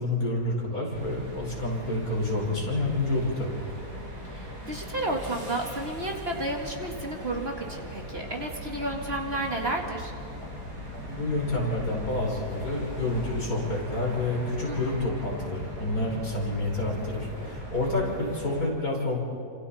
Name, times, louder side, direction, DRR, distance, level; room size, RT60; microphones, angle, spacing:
voice 1, 0.0-3.6 11.1-19.2, left 2 dB, 65° left, -3 dB, 5.9 m, -29 dB
sound 1, 0.9-18.7, equal, 90° right, 5.6 m, -39 dB
voice 2, 4.3-10.1 14.6-15.1, right 1 dB, 40° right, 0 dB, 2.4 m, -32 dB
30.0 x 27.0 x 4.4 m, 2.4 s
omnidirectional pair, 1.7 m